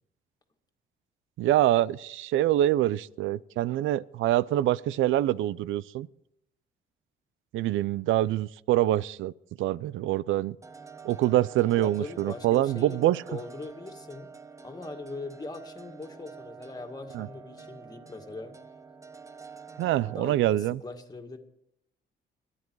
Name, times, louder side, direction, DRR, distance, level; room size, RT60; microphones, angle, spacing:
voice 1, 1.4-6.1 7.5-9.3 9.6-10.6 11.0-13.2 17.1-17.3 19.8-20.8, right 14 dB, 80° right, 0.5 m, -25 dB
sound 1, 10.6-20.2, right 5 dB, 15° right, 0.9 m, -48 dB
voice 2, 11.8-14.3 14.6-18.5 20.0-21.4, left 3 dB, 20° left, 2.0 m, -41 dB
23.0 x 9.9 x 4.7 m
cardioid pair, 90°, 20 cm